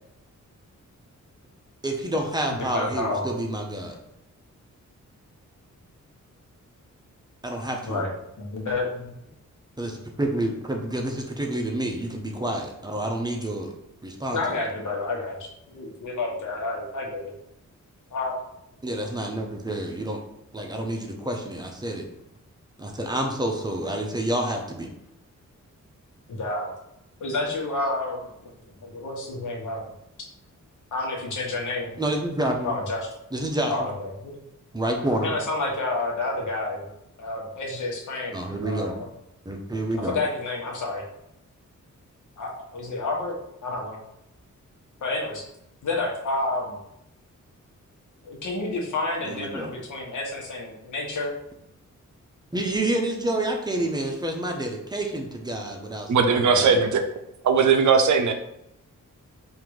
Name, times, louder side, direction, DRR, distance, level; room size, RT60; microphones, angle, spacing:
voice 1, 1.8-4.0 7.4-8.0 9.8-13.7 14.0-14.4 18.8-20.2 20.5-22.1 22.8-24.9 32.0-32.7 33.3-33.9 34.7-35.3 38.3-39.0 39.5-40.2 49.2-49.7 52.5-56.8, right 1 dB, 15° right, 1 dB, 0.6 m, -28 dB
voice 2, 2.5-3.3 7.8-8.1 8.4-9.1 14.3-17.3 18.1-18.3 26.3-26.7 27.2-29.8 30.9-32.0 32.6-33.0 33.7-34.3 35.2-36.9 37.2-38.9 40.0-41.0 42.4-43.3 43.6-44.0 45.0-45.4 45.8-46.8 48.2-51.3, left 2 dB, 75° left, -1 dB, 1.2 m, -30 dB
voice 3, 56.1-57.1 57.4-58.3, right 5 dB, 70° right, 6 dB, 0.6 m, -19 dB
3.7 x 2.6 x 4.7 m, 0.81 s
wide cardioid pair, 160°, 30 cm